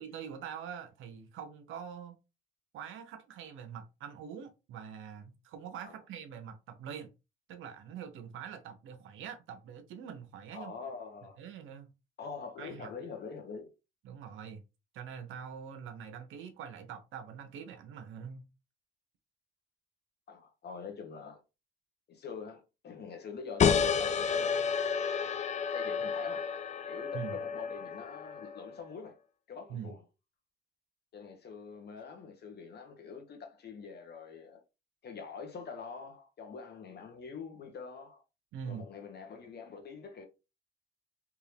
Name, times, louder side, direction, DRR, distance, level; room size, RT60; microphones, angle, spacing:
voice 1, 0.0-2.2 2.7-7.1 7.5-10.7 11.4-11.9 12.6-12.9 14.0-14.6 14.9-18.4 27.1-27.4 29.7-29.9 38.5-38.8, right 7 dB, 85° right, 0.8 m, -44 dB
voice 2, 10.5-11.4 12.2-13.7 20.3-21.4 22.1-24.7 25.7-26.5 26.8-29.2 29.5-30.0 31.1-34.6 35.0-38.2 38.6-40.3, left 5 dB, 55° left, 1.3 m, -45 dB
sound 1, 23.6-28.8, left 6 dB, 35° left, 0.4 m, -31 dB
3.6 x 2.8 x 3.3 m
cardioid pair, 90°, 20 cm